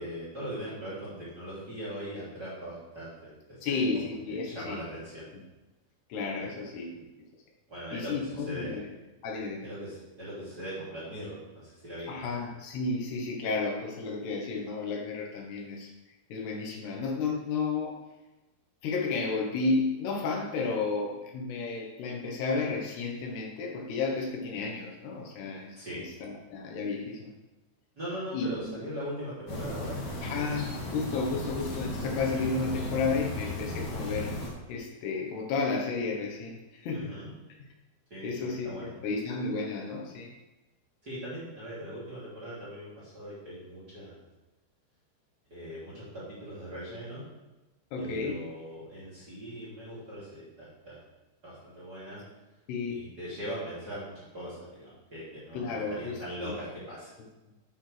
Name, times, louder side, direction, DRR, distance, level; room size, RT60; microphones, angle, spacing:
voice 1, 0.0-5.3 6.4-6.8 7.7-8.8 9.6-12.1 25.8-26.0 28.0-30.3 36.9-37.3 38.1-38.9 41.0-44.2 45.5-47.2 48.0-51.0 51.4-52.2 52.9-57.1, equal, 25° right, -9 dB, 2.6 m, -40 dB
voice 2, 3.6-4.8 5.3-5.4 6.1-7.1 7.9-8.9 9.2-9.6 12.1-15.9 16.3-18.0 18.8-27.3 28.3-28.8 30.2-34.3 34.7-37.2 38.2-40.3 47.9-48.4 52.7-53.0 55.5-56.2 56.4-56.5, left 4 dB, 75° left, 0 dB, 3.0 m, -32 dB
sound 1, 29.5-34.5, left 2 dB, 50° left, 2.8 m, -35 dB
9.4 x 8.9 x 3.3 m, 1.1 s
omnidirectional pair, 5.1 m